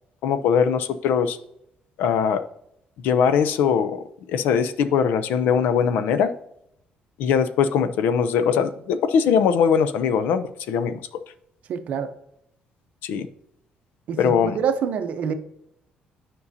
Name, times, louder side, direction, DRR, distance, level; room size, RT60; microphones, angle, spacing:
voice 1, 0.2-1.4 2.0-2.4 3.0-6.3 7.2-11.0 13.0-13.3 14.2-14.6, left 7 dB, 75° left, 12 dB, 0.5 m, -21 dB
voice 2, 11.7-12.1 14.1-15.3, right 7 dB, 50° right, 8 dB, 0.7 m, -26 dB
9.7 x 5.3 x 2.7 m, 0.76 s
cardioid pair, 175°, 3 cm